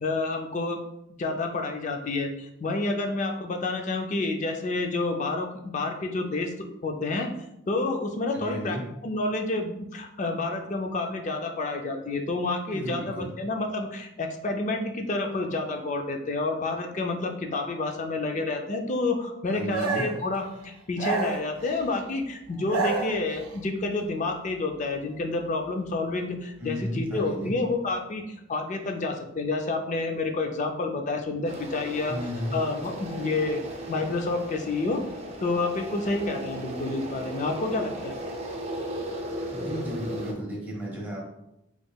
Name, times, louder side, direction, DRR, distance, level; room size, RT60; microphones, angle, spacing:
voice 1, 0.0-0.8 1.2-7.3 7.7-8.8 9.0-28.2 28.5-32.2 32.5-33.6 33.9-35.0 35.4-38.2, left 3 dB, 35° left, 4 dB, 0.4 m, -29 dB
voice 2, 8.3-8.8 12.7-13.3 19.5-20.0 26.6-27.5 32.1-32.6 39.5-41.2, equal, 10° right, -4 dB, 0.9 m, -33 dB
sound 1, 19.7-20.2 21.0-21.9 22.5-23.6, right 4 dB, 80° right, 0.5 m, -30 dB
sound 2, 31.5-40.3, equal, 30° right, 0.4 m, -36 dB
3.5 x 3.0 x 2.3 m, 0.84 s
head